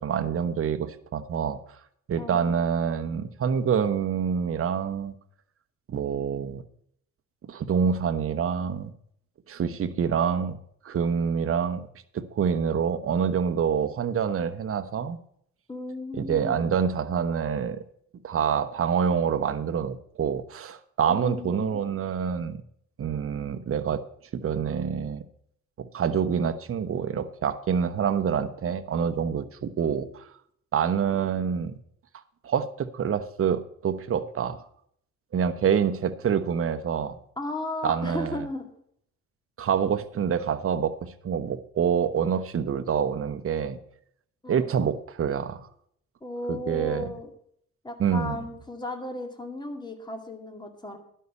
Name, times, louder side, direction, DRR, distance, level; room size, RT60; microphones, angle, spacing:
voice 1, 0.0-1.6 2.1-5.1 5.9-6.6 7.4-8.9 9.5-10.6 10.8-11.8 12.1-15.2 16.1-17.8 18.2-22.6 23.0-24.0 24.3-25.2 25.8-30.3 30.7-31.8 32.4-34.6 35.3-37.2 37.8-38.5 39.6-43.8 44.5-45.6 46.5-47.1 48.0-48.4, right 7 dB, 45° right, 11 dB, 1.0 m, -26 dB
voice 2, 2.2-2.6 15.7-16.7 21.1-21.8 37.4-38.7 44.4-44.7 46.2-47.3 47.8-51.0, left 1 dB, 15° left, 5 dB, 2.0 m, -35 dB
11.5 x 5.6 x 8.2 m, 0.67 s
cardioid pair, 90°, 30 cm